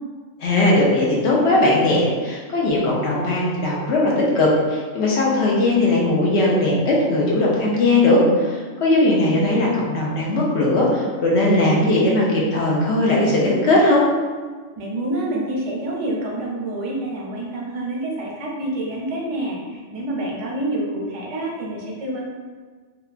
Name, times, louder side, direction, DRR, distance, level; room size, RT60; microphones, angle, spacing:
voice 1, 0.4-14.1, left 2 dB, 70° left, -4 dB, 0.8 m, -18 dB
voice 2, 14.8-22.2, right 1 dB, 80° right, -3 dB, 0.9 m, -27 dB
2.8 x 2.2 x 2.4 m, 1.5 s
omnidirectional pair, 1.2 m